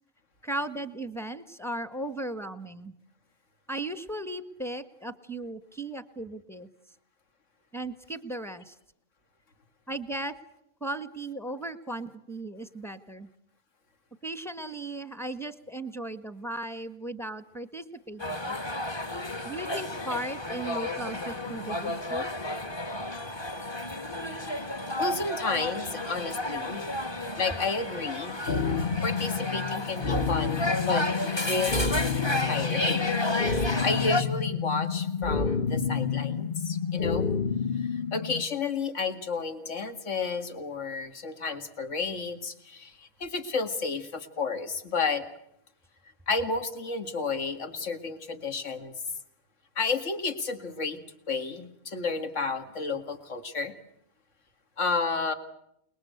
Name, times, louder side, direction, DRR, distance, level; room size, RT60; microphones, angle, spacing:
voice 1, 0.4-2.9 3.7-6.7 7.7-8.7 9.9-10.3 10.8-13.3 14.2-18.6 19.4-22.3, right 1 dB, ahead, 11 dB, 1.5 m, -36 dB
sound 1, 18.2-34.2, left 1 dB, 20° left, 1.4 m, -32 dB
voice 2, 24.3-26.8 27.4-28.4 29.0-32.0 32.4-33.0 33.4-37.3 37.8-45.2 46.3-49.0 49.8-51.0 51.3-53.7 54.8-55.3, left 4 dB, 60° left, 8 dB, 2.4 m, -32 dB
sound 2, 28.5-38.4, left 5 dB, 40° left, 1.4 m, -29 dB
29.0 x 21.0 x 8.1 m, 0.76 s
omnidirectional pair, 1.5 m